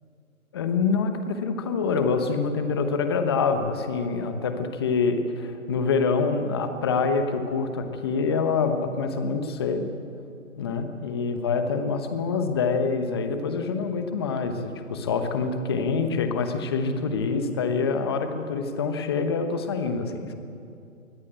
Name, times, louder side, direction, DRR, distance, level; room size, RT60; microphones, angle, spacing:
voice 1, 0.5-9.8 10.6-20.3, left 4 dB, 15° left, 7 dB, 1.0 m, -26 dB
23.0 x 18.0 x 8.9 m, 2.6 s
hypercardioid pair, 160°, 43 cm